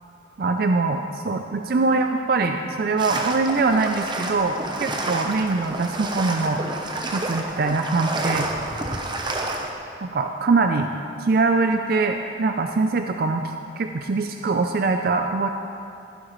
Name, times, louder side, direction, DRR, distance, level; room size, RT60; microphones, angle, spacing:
voice 1, 0.4-6.6 7.1-8.5 10.0-10.9 11.2-13.4 13.8-15.5, right 3 dB, 50° right, 5 dB, 0.4 m, -23 dB
sound 1, 3.0-9.7, right 2 dB, 25° right, 0.8 m, -29 dB
15.5 x 11.5 x 3.1 m, 2.5 s
head